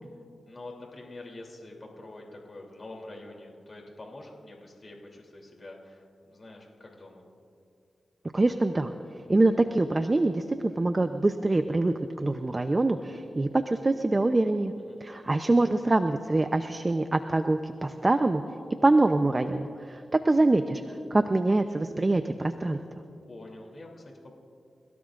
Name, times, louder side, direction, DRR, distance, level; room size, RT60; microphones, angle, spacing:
voice 1, 0.4-7.2 14.8-15.0 23.3-24.3, left 2 dB, 45° left, -1 dB, 3.1 m, -46 dB
voice 2, 8.3-8.9 9.3-14.7 15.0-18.4 18.8-20.8 21.1-22.8, right 2 dB, 30° right, 8 dB, 0.7 m, -24 dB
30.0 x 17.0 x 2.6 m, 2.5 s
cardioid pair, 55°, 0 cm